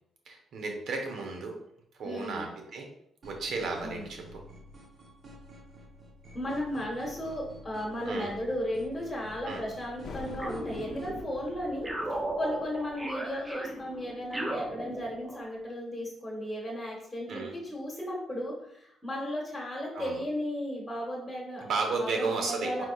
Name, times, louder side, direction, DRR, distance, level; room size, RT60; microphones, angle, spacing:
voice 1, 0.3-1.6 1.9-2.9 3.2-4.4 8.0-8.3 9.4-9.6 17.3-17.6 19.9-20.2 21.6-22.8, right 4 dB, 70° right, 2 dB, 1.0 m, -33 dB
voice 2, 2.0-2.5 3.8-4.0 6.3-21.7 22.0-22.8, equal, 15° left, -3 dB, 1.3 m, -35 dB
sound 1, 3.2-11.2, equal, 45° right, 0.9 m, -50 dB
sound 2, 10.0-15.3, left 4 dB, 55° left, 0.7 m, -47 dB
sound 3, 10.4-11.4 11.8-15.5, right 1 dB, 15° right, 0.6 m, -36 dB
4.4 x 4.1 x 2.4 m, 0.75 s
cardioid pair, 90°, 0 cm